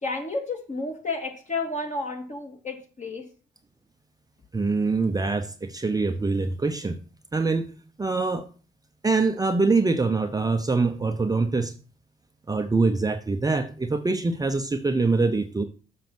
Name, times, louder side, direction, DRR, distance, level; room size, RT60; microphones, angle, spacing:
voice 1, 0.0-3.2, left 3 dB, 35° left, 2 dB, 2.8 m, -31 dB
voice 2, 4.5-7.0 7.3-7.7 8.0-8.4 9.0-11.7 12.5-15.6, right 3 dB, 20° right, 6 dB, 0.7 m, -24 dB
7.1 x 6.3 x 6.0 m, 0.40 s
cardioid pair, 90°, 20 cm